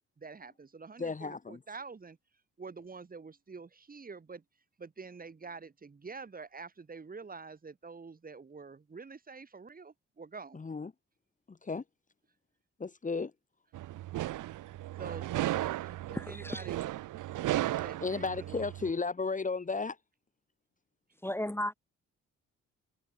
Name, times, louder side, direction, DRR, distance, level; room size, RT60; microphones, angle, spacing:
voice 1, 0.2-2.2 2.6-4.4 4.8-10.6 15.0-16.8 17.5-18.7, right 4 dB, 30° right, 2.7 m, -47 dB
voice 2, 1.0-1.6 10.5-10.9 11.5-11.8 12.8-13.3 18.0-20.0, left 4 dB, 25° left, 1.7 m, -34 dB
sound 1, 13.7-18.9, right 15 dB, 85° right, 2.9 m, -35 dB
voice 3, 16.1-16.7 21.2-21.7, left 1 dB, 10° left, 1.9 m, -35 dB
cardioid pair, 90°, 30 cm